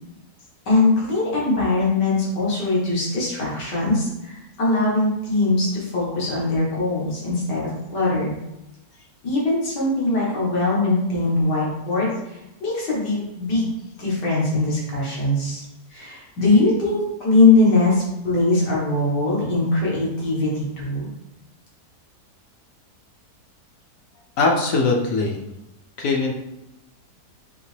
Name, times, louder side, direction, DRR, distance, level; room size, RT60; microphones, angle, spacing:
voice 1, 0.7-7.6 7.9-8.4 9.2-13.7 14.0-15.6 15.9-21.1, left 2 dB, 90° left, -6 dB, 2.0 m, -21 dB
voice 2, 24.4-25.4 26.0-26.3, left 3 dB, 70° left, 0 dB, 0.8 m, -20 dB
5.0 x 2.9 x 3.2 m, 0.92 s
omnidirectional pair, 1.8 m